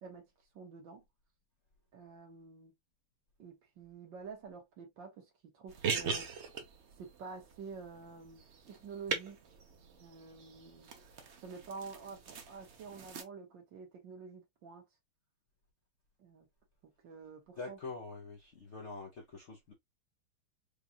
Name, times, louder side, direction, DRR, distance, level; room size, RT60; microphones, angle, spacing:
voice 1, 0.0-1.0 1.9-2.7 3.4-6.3 7.0-9.6 10.0-10.9 11.4-14.8 16.2-16.5 16.8-17.8, right 5 dB, 65° right, 1.9 m, -49 dB
sound 1, 5.7-13.2, right 5 dB, 85° right, 0.6 m, -41 dB
voice 2, 17.6-19.7, left 3 dB, 60° left, 0.7 m, -45 dB
5.1 x 2.3 x 2.8 m
omnidirectional pair, 2.2 m